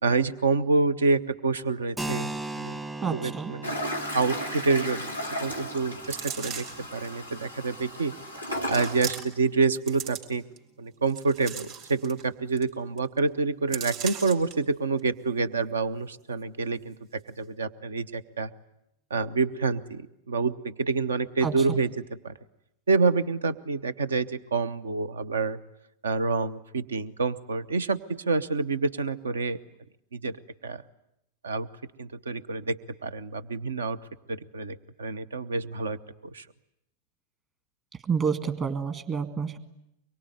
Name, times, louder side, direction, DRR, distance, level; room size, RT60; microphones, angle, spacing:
voice 1, 0.0-2.3 2.6-2.8 3.1-6.7 6.9-8.1 8.7-10.4 10.8-18.5 19.1-22.3 22.9-25.6 26.0-29.6 30.1-30.4 30.6-30.8 31.4-31.7 32.0-34.0 34.3-36.0 36.3-36.4, right 4 dB, 70° right, 16 dB, 1.0 m, -27 dB
Keyboard (musical), 2.0-9.3, right 2 dB, 15° right, 1.0 m, -40 dB
voice 2, 3.0-3.5 21.4-21.8 38.1-39.6, right 6 dB, 30° right, 10 dB, 2.0 m, -29 dB
Toilet flush, 3.6-9.1, equal, 90° right, 2.8 m, -35 dB
sound 1, 6.0-6.9 7.6-7.7 8.6-9.5 9.7-10.6 11.1-12.2 12.6-12.7 13.0-13.2 13.7-14.5 15.0-15.1, right 7 dB, 45° right, 3.7 m, -37 dB
24.5 x 23.0 x 9.8 m, 0.81 s
figure-of-eight pair, 90°, 0 cm